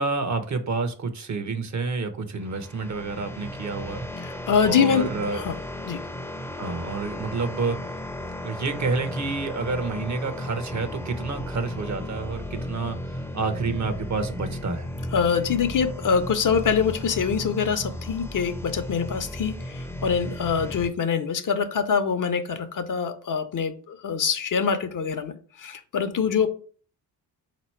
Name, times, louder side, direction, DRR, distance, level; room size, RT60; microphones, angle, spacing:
voice 1, 0.0-4.0 4.6-5.4 6.6-7.9 8.4-14.9, right 4 dB, 45° right, 10 dB, 0.9 m, -29 dB
sound 1, 2.4-20.9, left 1 dB, 5° left, 0.7 m, -35 dB
voice 2, 4.2-5.6 5.9-6.0 15.1-26.5, left 6 dB, 50° left, 9 dB, 0.8 m, -25 dB
3.9 x 3.0 x 4.4 m, 0.42 s
supercardioid pair, 60°, 41 cm